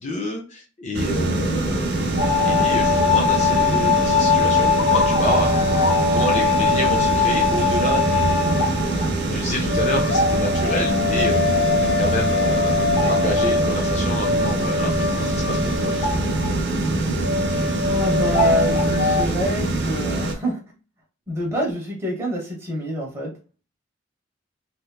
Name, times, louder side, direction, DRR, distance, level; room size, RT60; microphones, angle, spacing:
voice 1, 0.0-2.0 2.4-5.6 6.1-16.3, equal, 35° left, 1 dB, 0.5 m, -29 dB
sound 1, 0.9-20.3, right 2 dB, 55° right, 0.6 m, -24 dB
sound 2, 2.2-16.5 16.8-16.9 17.2-19.2, left 4 dB, 80° left, 0.8 m, -21 dB
voice 2, 17.8-20.6 21.3-23.3, equal, 15° right, -3 dB, 1.1 m, -25 dB
3.2 x 2.9 x 2.3 m, 0.36 s
head